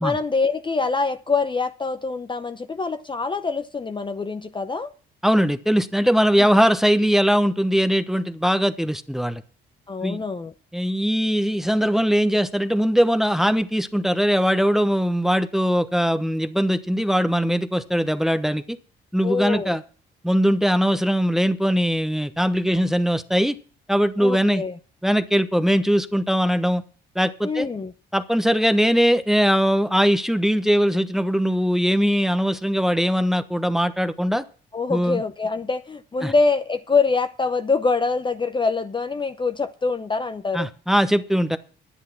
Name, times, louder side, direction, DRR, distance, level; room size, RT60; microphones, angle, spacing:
voice 1, 0.0-4.9 6.4-6.6 9.9-10.5 19.2-19.8 24.2-24.8 27.4-27.9 34.7-40.7, left 4 dB, 25° left, 0.8 m, -24 dB
voice 2, 5.2-9.4 10.0-10.2 10.7-18.8 19.1-19.8 20.2-23.6 23.9-24.6 25.0-26.8 27.1-27.7 28.1-34.4 34.9-35.2 36.2-36.3 40.5-41.6, equal, ahead, 1.0 m, -20 dB
10.5 x 10.0 x 5.8 m
cardioid pair, 90°, 20 cm